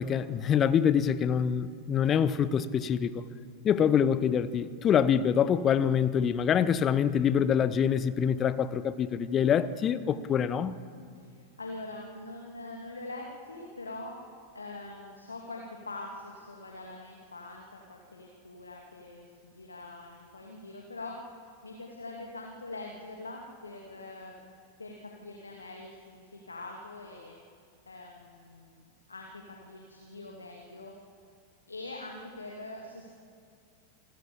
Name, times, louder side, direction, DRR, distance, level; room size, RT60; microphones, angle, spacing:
voice 1, 0.0-3.2 3.6-10.8, left 8 dB, 25° left, 0.9 m, -25 dB
voice 2, 11.1-14.2 14.5-24.3 24.8-27.4 27.9-28.8 29.1-30.9 31.7-33.1, left 2 dB, 80° left, 2.5 m, -43 dB
27.0 x 15.5 x 8.7 m
figure-of-eight pair, 90°, 0 cm